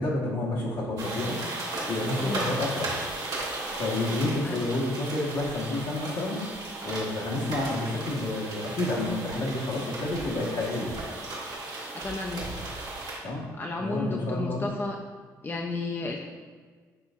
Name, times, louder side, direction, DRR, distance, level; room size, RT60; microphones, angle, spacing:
voice 1, 0.0-1.4 1.9-2.9 3.8-6.4 6.8-10.9 13.2-13.4 13.8-14.7, left 2 dB, 65° left, -4 dB, 1.2 m, -29 dB
sound 1, 1.0-13.2, right 2 dB, 60° right, 1.3 m, -36 dB
voice 2, 11.9-12.5 13.5-15.0 15.4-16.2, left 2 dB, 25° left, 1 dB, 0.4 m, -32 dB
5.6 x 3.4 x 2.4 m, 1.5 s
supercardioid pair, 60°, 8 cm